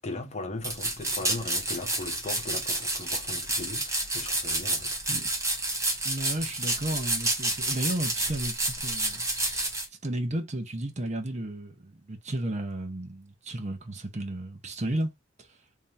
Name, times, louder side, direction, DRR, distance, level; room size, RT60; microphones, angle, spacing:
voice 1, 0.0-5.0, left 2 dB, 35° left, 1.0 m, -38 dB
sound 1, 0.6-9.9, right 2 dB, 15° right, 1.1 m, -30 dB
voice 2, 6.0-9.7 10.0-15.1, right 1 dB, 35° right, 0.9 m, -33 dB
3.4 x 2.8 x 3.3 m
head